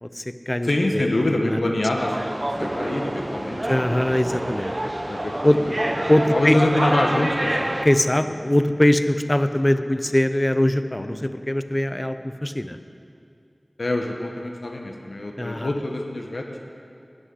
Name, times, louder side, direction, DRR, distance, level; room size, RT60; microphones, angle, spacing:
voice 1, 0.0-1.1 1.4-1.6 3.6-4.9 5.4-5.6 6.1-6.6 7.8-12.8 15.4-15.7, left 1 dB, 25° left, 10 dB, 0.6 m, -22 dB
voice 2, 0.6-2.2 2.6-3.8 5.1-5.7 6.3-7.7 11.0-11.2 13.8-16.7, left 1 dB, 90° left, 2 dB, 1.0 m, -25 dB
sound 1, 2.0-7.9, right 1 dB, 35° right, 0.8 m, -27 dB
12.5 x 6.3 x 9.5 m, 2.5 s
wide cardioid pair, 40°, 0 cm